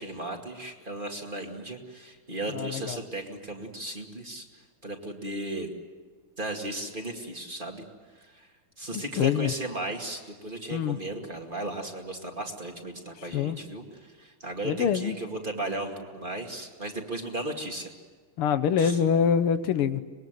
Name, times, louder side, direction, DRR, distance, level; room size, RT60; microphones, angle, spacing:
voice 1, 0.0-4.5 4.8-5.7 6.4-7.8 8.2-8.5 8.8-17.9 18.8-19.0, right 1 dB, 25° right, 2 dB, 2.4 m, -35 dB
voice 2, 2.5-3.0 8.9-9.5 10.7-11.0 13.3-13.6 14.6-15.2 18.4-20.0, left 7 dB, 85° left, 11 dB, 2.0 m, -25 dB
25.5 x 21.0 x 9.2 m, 1.5 s
omnidirectional pair, 2.4 m